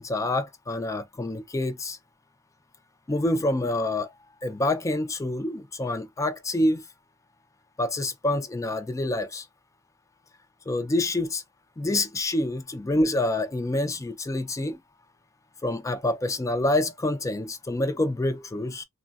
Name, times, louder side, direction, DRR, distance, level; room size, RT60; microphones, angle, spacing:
voice 1, 0.0-2.0 3.1-4.1 4.4-6.8 7.8-9.4 10.7-11.4 11.8-14.8 15.6-18.8, left 1 dB, 15° left, 0.3 m, -27 dB
3.4 x 2.0 x 2.3 m
head